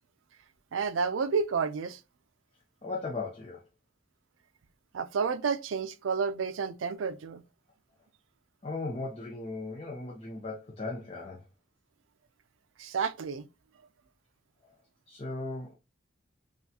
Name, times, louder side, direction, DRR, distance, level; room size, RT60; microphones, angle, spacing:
voice 1, 0.7-2.0 4.9-7.4 12.8-13.5, right 5 dB, 85° right, 0.4 m, -30 dB
voice 2, 2.8-3.6 8.6-11.4 15.1-15.7, left 3 dB, 30° left, 0.6 m, -37 dB
5.6 x 2.4 x 2.7 m
head